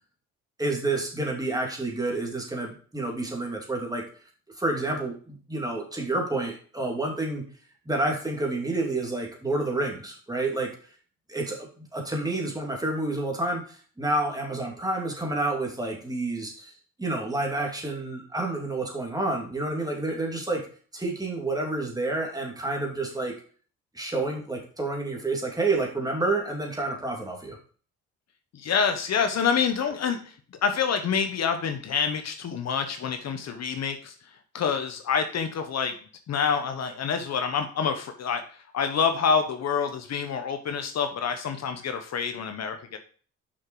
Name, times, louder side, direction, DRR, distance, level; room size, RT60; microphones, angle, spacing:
voice 1, 0.6-4.0 4.6-7.4 7.9-10.7 11.3-20.7 20.9-23.3 23.9-27.6, right 2 dB, 10° right, 0 dB, 2.7 m, -29 dB
voice 2, 28.5-30.3 30.6-34.1 34.5-36.0 36.3-43.0, left 6 dB, 60° left, 7 dB, 1.1 m, -27 dB
6.3 x 5.9 x 4.6 m, 0.41 s
cardioid pair, 90°, 30 cm